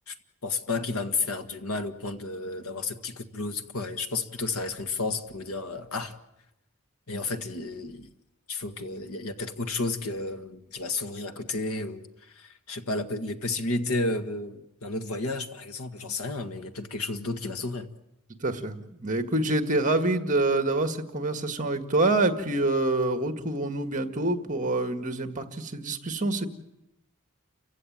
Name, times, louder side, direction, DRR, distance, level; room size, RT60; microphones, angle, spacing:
voice 1, 0.4-6.1 7.1-8.1 8.5-17.9, left 3 dB, 75° left, 8 dB, 1.7 m, -32 dB
voice 2, 18.4-26.5, right 2 dB, 35° right, 8 dB, 1.8 m, -26 dB
30.0 x 16.0 x 9.2 m, 0.89 s
head